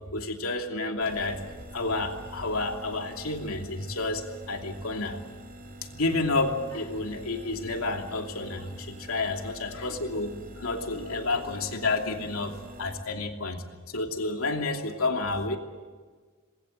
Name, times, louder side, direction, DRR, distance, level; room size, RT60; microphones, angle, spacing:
voice 1, 0.1-1.4 1.7-5.2 5.9-15.6, left 2 dB, 90° left, 3 dB, 2.8 m, -30 dB
sound 1, 1.0-13.0, right 1 dB, 45° right, 4.8 m, -45 dB
27.0 x 21.0 x 8.0 m, 1.5 s
head